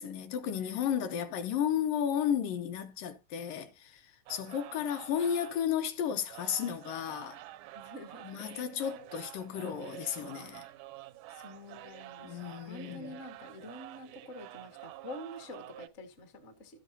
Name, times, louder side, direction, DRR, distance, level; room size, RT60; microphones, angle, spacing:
voice 1, 0.0-7.4 8.2-10.7 12.2-13.2, left 9 dB, 70° left, 2.4 m, -33 dB
voice 2, 0.6-1.2 7.7-8.3 10.3-10.5 11.3-16.8, left 1 dB, 50° left, 0.7 m, -47 dB
sound 1, 4.3-15.9, right 16 dB, 85° right, 1.9 m, -49 dB
13.0 x 8.1 x 2.7 m
omnidirectional pair, 4.3 m